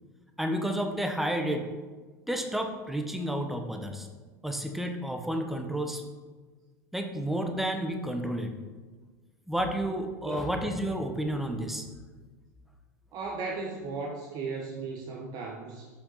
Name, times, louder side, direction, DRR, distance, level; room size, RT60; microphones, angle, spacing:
voice 1, 0.4-1.7 2.3-4.1 4.4-6.0 6.9-8.5 9.5-11.9, right 1 dB, ahead, 4 dB, 1.0 m, -31 dB
voice 2, 10.3-10.6 13.1-15.9, right 4 dB, 40° right, -1 dB, 1.1 m, -36 dB
7.0 x 6.6 x 4.1 m, 1.4 s
figure-of-eight pair, 75°, 10 cm